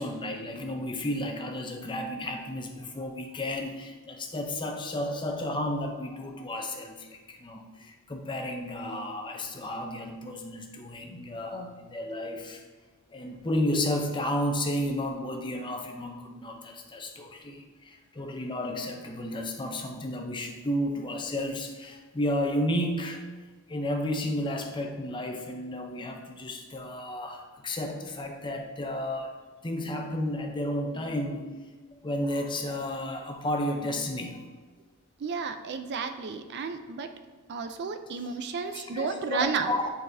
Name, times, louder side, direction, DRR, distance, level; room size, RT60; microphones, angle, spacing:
voice 1, 0.0-12.6 13.1-23.2 23.7-29.4 29.6-31.6 32.0-34.4 38.6-39.9, left 1 dB, 20° left, 3 dB, 0.6 m, -32 dB
voice 2, 35.2-37.1 37.5-39.8, right 5 dB, 50° right, 8 dB, 0.4 m, -32 dB
9.0 x 4.0 x 2.6 m, 1.3 s
head